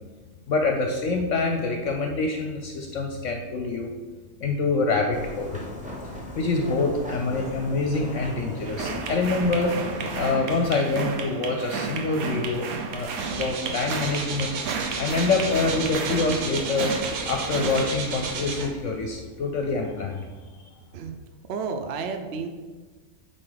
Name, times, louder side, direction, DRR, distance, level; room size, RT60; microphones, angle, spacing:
voice 1, 0.5-3.9 4.4-5.6 6.3-9.7 10.1-14.5 15.0-16.9 17.3-20.3 20.6-20.7, left 3 dB, 65° left, 2 dB, 0.9 m, -26 dB
sound 1, 5.1-10.2, left 1 dB, 5° right, 0.9 m, -37 dB
sound 2, 8.6-17.9, right 5 dB, 75° right, 1.2 m, -33 dB
sound 3, 13.0-19.0 19.6-19.7, right 4 dB, 90° right, 1.4 m, -33 dB
voice 2, 21.5-22.5, right 5 dB, 55° right, 6 dB, 0.7 m, -31 dB
9.1 x 3.9 x 4.0 m, 1.3 s
omnidirectional pair, 1.6 m